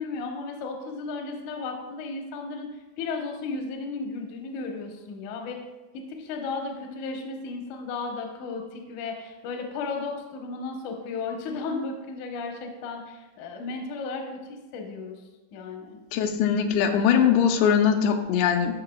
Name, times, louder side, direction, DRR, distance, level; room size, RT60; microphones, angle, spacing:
voice 1, 0.0-5.6 5.9-14.4 14.7-15.2 15.5-16.0, left 4 dB, 70° left, 2 dB, 1.9 m, -34 dB
voice 2, 16.1-18.8, left 8 dB, 90° left, 5 dB, 2.8 m, -21 dB
13.0 x 5.7 x 2.3 m, 1.1 s
omnidirectional pair, 4.9 m